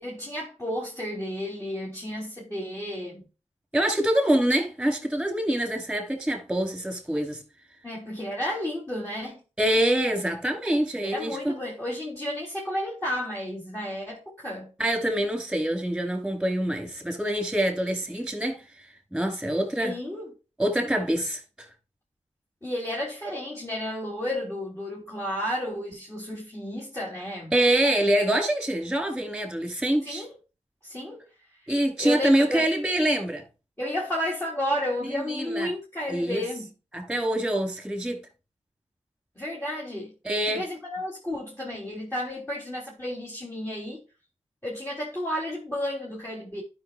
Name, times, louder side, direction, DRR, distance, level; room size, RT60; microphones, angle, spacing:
voice 1, 0.0-3.2 7.8-9.4 11.0-14.7 19.8-20.3 22.6-27.5 30.0-30.3 30.8-31.3 32.0-32.7 33.8-36.7 39.4-40.1 40.5-44.0 44.6-46.6, left 1 dB, 15° left, 4.0 m, -32 dB
voice 2, 3.7-7.4 9.6-11.5 14.8-18.6 19.1-19.9 20.6-21.4 27.5-30.2 31.7-33.4 35.3-35.7 36.1-36.4 36.9-38.2 40.2-40.6, right 1 dB, 5° right, 4.1 m, -25 dB
12.5 x 5.8 x 2.6 m
cardioid pair, 40°, 12 cm